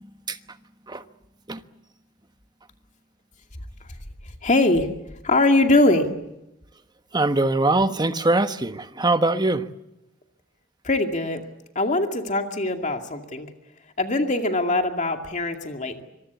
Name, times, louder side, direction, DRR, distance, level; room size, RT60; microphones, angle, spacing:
voice 1, 4.4-4.9 5.2-6.1 10.8-11.4 11.8-13.5 14.0-16.0, left 2 dB, 35° left, 2.3 m, -22 dB
voice 2, 7.1-9.7, right 2 dB, 20° right, 1.2 m, -22 dB
25.5 x 23.0 x 8.3 m
head